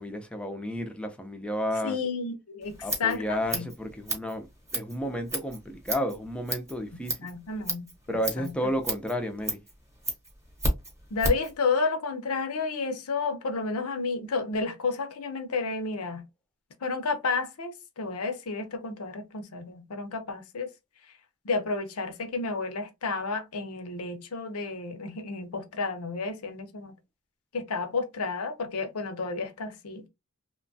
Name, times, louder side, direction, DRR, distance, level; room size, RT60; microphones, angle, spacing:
voice 1, 0.0-2.0 2.8-4.5 4.7-7.2 8.1-9.6, equal, 5° left, 0.4 m, -32 dB
voice 2, 1.8-2.7 3.0-3.7 7.2-8.7 11.1-16.2 16.8-20.7 21.4-26.9 27.5-30.0, left 4 dB, 85° left, 0.7 m, -31 dB
Scissors, 2.6-11.5, right 1 dB, 15° right, 0.9 m, -33 dB
3.0 x 2.2 x 2.6 m
head